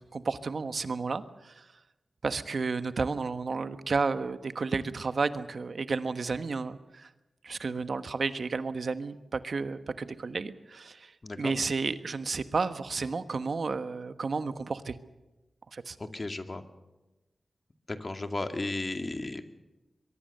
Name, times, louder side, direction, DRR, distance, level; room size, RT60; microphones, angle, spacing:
voice 1, 0.1-1.6 2.2-7.1 7.4-11.1 11.4-15.0 15.7-16.0, right 4 dB, 70° right, 11 dB, 1.3 m, -32 dB
voice 2, 16.0-16.6 17.9-19.4, left 2 dB, 40° left, 7 dB, 2.3 m, -34 dB
23.0 x 22.5 x 6.8 m, 1.0 s
cardioid pair, 50°, 0 cm